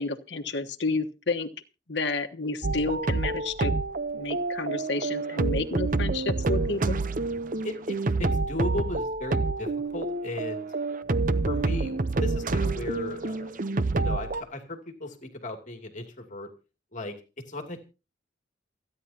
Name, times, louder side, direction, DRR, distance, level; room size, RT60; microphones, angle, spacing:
voice 1, 0.0-1.5 1.9-3.7 4.1-7.0, left 3 dB, 70° left, 3 dB, 1.3 m, -30 dB
sound 1, 2.6-14.4, right 3 dB, 45° right, 0.8 m, -28 dB
voice 2, 7.6-10.7 11.5-13.5 13.9-16.5 16.9-17.2 17.5-17.8, left 1 dB, 45° left, 4 dB, 2.7 m, -36 dB
28.5 x 9.9 x 2.9 m, 0.33 s
head